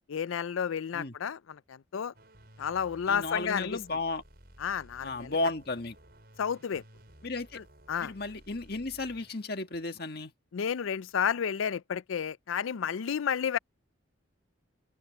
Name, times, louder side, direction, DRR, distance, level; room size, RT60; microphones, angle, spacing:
voice 1, 0.1-2.1 2.6-3.8 4.6-5.3 6.4-6.8 7.6-8.1 10.5-13.6, left 7 dB, 85° left, 0.4 m, -31 dB
sound 1, 2.1-9.9, right 1 dB, 50° right, 6.5 m, -56 dB
voice 2, 3.1-4.2 5.0-6.0 7.2-7.6 8.0-10.3, left 2 dB, 50° left, 1.8 m, -34 dB
open air
head